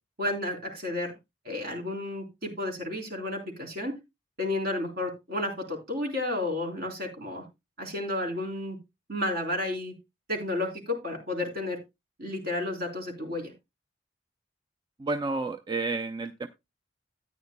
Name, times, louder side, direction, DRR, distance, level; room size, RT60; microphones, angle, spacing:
voice 1, 0.2-1.1 1.4-4.0 4.4-7.4 7.8-8.8 9.1-9.9 10.3-11.8 12.2-13.5, left 1 dB, 60° right, 2 dB, 3.8 m, -32 dB
voice 2, 15.0-16.5, right 3 dB, 25° right, 7 dB, 0.5 m, -30 dB
13.5 x 9.5 x 2.2 m, 0.22 s
head